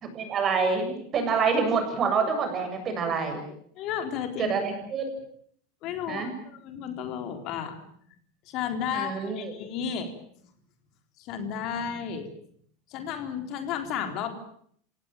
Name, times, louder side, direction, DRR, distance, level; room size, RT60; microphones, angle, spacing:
voice 1, 0.0-3.4 4.4-5.1 6.1-6.3 8.9-9.5, right 5 dB, 30° right, 6 dB, 7.6 m, -27 dB
voice 2, 3.8-4.5 5.8-7.8 8.5-10.1 11.2-12.3 12.9-14.3, left 8 dB, 50° left, 7 dB, 4.0 m, -33 dB
27.5 x 18.0 x 9.1 m, 0.65 s
supercardioid pair, 135°, 0 cm